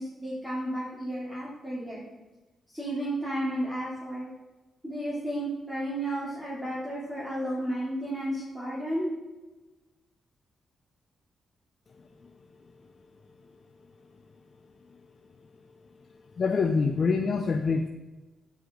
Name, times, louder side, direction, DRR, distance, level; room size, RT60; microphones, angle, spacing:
voice 1, 0.0-2.0 2.7-4.3 4.8-9.1, right 1 dB, ahead, -9 dB, 3.1 m, -32 dB
voice 2, 16.4-17.9, left 4 dB, 55° left, 6 dB, 0.6 m, -25 dB
12.5 x 5.0 x 4.0 m, 1.2 s
cardioid pair, 60°, 0 cm